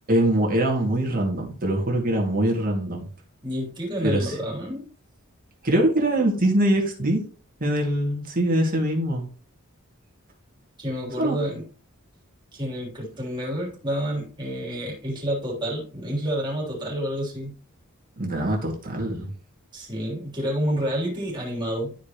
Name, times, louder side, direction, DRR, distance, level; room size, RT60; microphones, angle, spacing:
voice 1, 0.1-3.0 4.0-4.4 5.6-7.2 7.6-9.2 11.2-11.4 18.2-19.3, right 1 dB, 40° right, -1 dB, 2.2 m, -23 dB
voice 2, 3.4-4.9 10.8-11.6 12.5-17.5 19.7-22.0, equal, 20° right, -4 dB, 3.3 m, -29 dB
12.5 x 5.1 x 3.0 m, 0.39 s
head